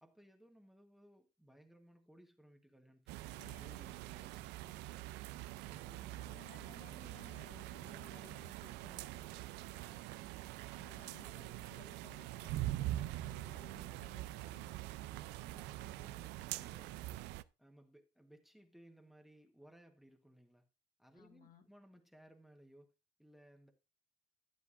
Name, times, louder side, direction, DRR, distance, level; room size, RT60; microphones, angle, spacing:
voice 1, 0.0-5.0 5.7-6.7 15.4-17.2 17.6-20.7 21.0-22.9 23.2-23.7, equal, ahead, 1.2 m, -62 dB
sound 1, 3.1-17.4, right 16 dB, 90° right, 0.4 m, -44 dB
voice 2, 3.3-3.8 6.2-9.4 9.7-10.0 10.7-15.1 21.1-21.7, left 6 dB, 55° left, 1.9 m, -60 dB
12.5 x 7.9 x 2.5 m
cardioid pair, 110°, 17 cm